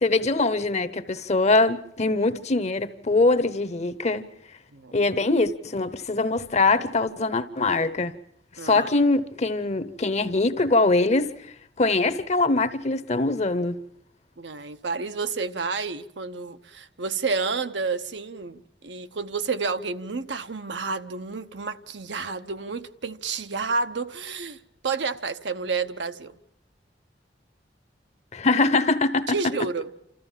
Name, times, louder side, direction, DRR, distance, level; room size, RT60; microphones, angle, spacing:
voice 1, 0.0-4.3 4.9-8.1 8.6-11.3 11.8-13.8 28.3-29.3, left 3 dB, 40° left, 0.9 m, -23 dB
voice 2, 14.4-24.6 24.8-26.3 29.3-29.9, right 4 dB, 80° right, 0.9 m, -30 dB
28.5 x 14.0 x 7.3 m
head